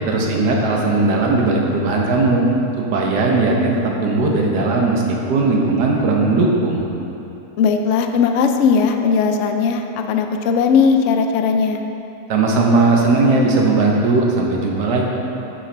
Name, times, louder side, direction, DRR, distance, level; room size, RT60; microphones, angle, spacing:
voice 1, 0.1-2.4 2.8-6.8 12.3-15.1, right 3 dB, 75° right, -1 dB, 1.6 m, -17 dB
voice 2, 7.6-11.8, left 5 dB, 80° left, 5 dB, 0.6 m, -17 dB
8.6 x 8.2 x 3.3 m, 2.9 s
omnidirectional pair, 1.8 m